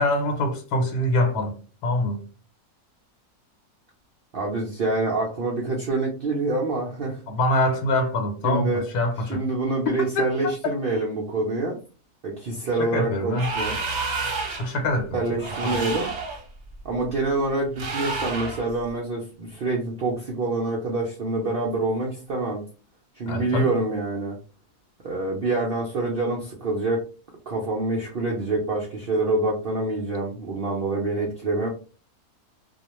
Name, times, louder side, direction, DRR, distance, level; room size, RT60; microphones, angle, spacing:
voice 1, 0.0-2.2 7.3-9.4 10.2-10.3 12.8-13.5 14.6-15.2 15.6-15.8 23.3-23.7, left 1 dB, 80° left, 1.2 m, -24 dB
voice 2, 4.3-7.2 8.4-8.9 9.2-11.8 12.2-13.8 15.1-16.1 16.8-22.6 23.2-24.4 25.0-27.0 27.5-31.7, right 2 dB, 80° right, 0.5 m, -26 dB
sound 1, 13.3-14.8 15.4-16.4 17.8-18.7, right 3 dB, 55° right, 0.8 m, -29 dB
2.4 x 2.2 x 2.9 m
omnidirectional pair, 1.6 m